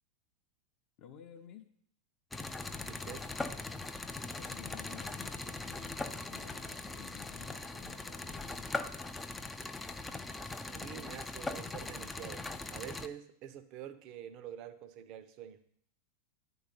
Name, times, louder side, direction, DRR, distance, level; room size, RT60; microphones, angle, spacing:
voice 1, 1.0-1.7 4.1-8.7, left 9 dB, 40° left, 4 dB, 0.7 m, -53 dB
sound 1, 2.3-13.1, left 3 dB, 10° left, 0.4 m, -40 dB
voice 2, 2.8-3.2 10.7-15.6, right 9 dB, 40° right, 12 dB, 0.6 m, -47 dB
10.0 x 3.9 x 5.6 m, 0.65 s
figure-of-eight pair, 90°, 0 cm